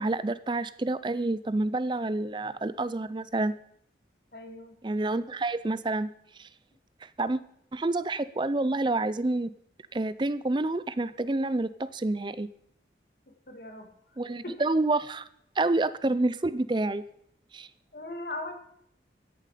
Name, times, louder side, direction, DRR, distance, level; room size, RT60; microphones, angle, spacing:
voice 1, 0.0-3.5 4.8-6.1 6.4-6.5 7.0-7.4 7.7-9.5 9.9-12.5 14.2-15.3 15.6-17.0 17.5-17.7, right 2 dB, 25° right, 16 dB, 0.5 m, -28 dB
voice 2, 4.3-4.7 13.3-14.2 14.4-14.7 17.9-18.5, left 2 dB, 55° left, 4 dB, 2.4 m, -39 dB
16.0 x 11.0 x 5.0 m, 0.71 s
head